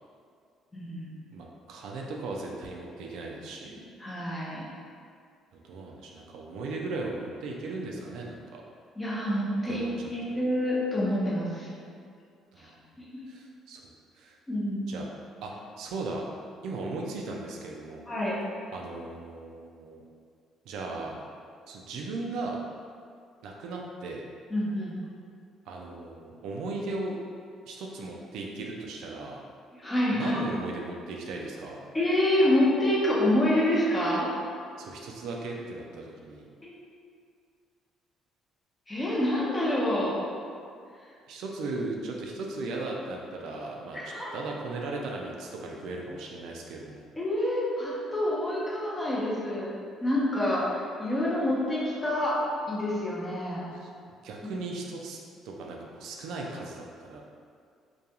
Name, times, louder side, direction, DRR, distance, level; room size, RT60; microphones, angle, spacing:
voice 1, 0.7-1.1 4.0-4.6 9.0-9.8 10.1-11.7 12.6-12.7 13.0-13.1 14.5-14.9 18.1-18.4 24.5-25.0 29.8-30.4 31.9-34.3 36.6-36.7 38.9-40.2 43.9-44.3 47.2-49.7 50.0-52.4 52.7-53.7, left 1 dB, 20° left, -6 dB, 0.7 m, -27 dB
voice 2, 1.3-3.8 5.5-8.6 9.7-10.4 12.5-12.8 13.3-14.4 14.9-15.1 15.4-16.2 16.6-18.1 18.7-20.0 20.7-21.2 21.7-22.6 23.4-24.2 25.7-27.2 27.7-29.4 30.1-31.8 34.8-36.4 41.3-44.0 44.3-47.1 53.7-53.9 54.2-55.2 55.4-57.2, right 3 dB, 75° right, -1 dB, 0.3 m, -37 dB
2.4 x 2.2 x 2.8 m, 2.2 s
supercardioid pair, 80°, 0 cm